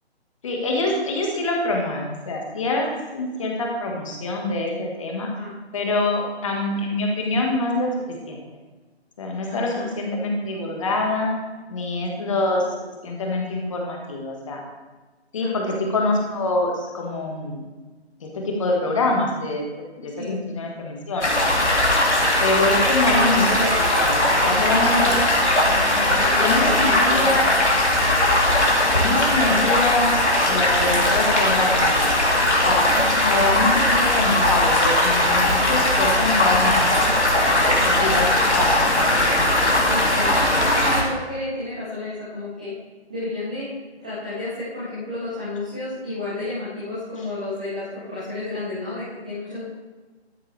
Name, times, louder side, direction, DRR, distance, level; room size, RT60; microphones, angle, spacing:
voice 1, 0.4-5.3 5.7-7.9 8.3-8.4 9.2-11.3 11.7-12.6 13.0-14.6 15.3-15.6 15.9-17.6 18.2-19.6 20.0-21.3 22.4-25.2 25.6-27.4 28.4-30.1 30.5-32.0 32.6-32.9 33.2-37.1 37.4-39.9, left 2 dB, 30° left, 0 dB, 1.7 m, -25 dB
voice 2, 9.5-9.9 15.4-15.8 20.1-20.4 24.8-25.2 25.9-27.5 32.9-33.4 37.7-38.1 39.9-40.3 40.8-42.7 43.1-43.7 44.0-49.7, left 2 dB, 5° right, -11 dB, 0.6 m, -31 dB
sound 1, 21.2-41.0, left 1 dB, 90° left, 2.4 m, -19 dB
12.5 x 7.8 x 3.4 m, 1.3 s
figure-of-eight pair, 150°, 33 cm